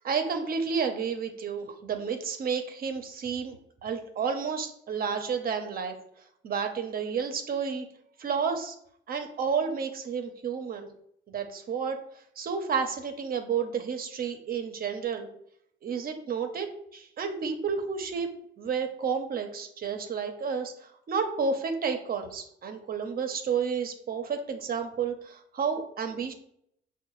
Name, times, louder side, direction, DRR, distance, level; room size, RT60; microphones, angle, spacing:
voice 1, 0.0-6.0 6.4-7.9 8.2-8.7 9.1-10.9 11.3-12.0 12.4-15.3 15.8-18.3 18.6-26.3, right 6 dB, 50° right, 5 dB, 0.6 m, -31 dB
5.3 x 2.2 x 3.0 m, 0.69 s
cardioid pair, 90°, 20 cm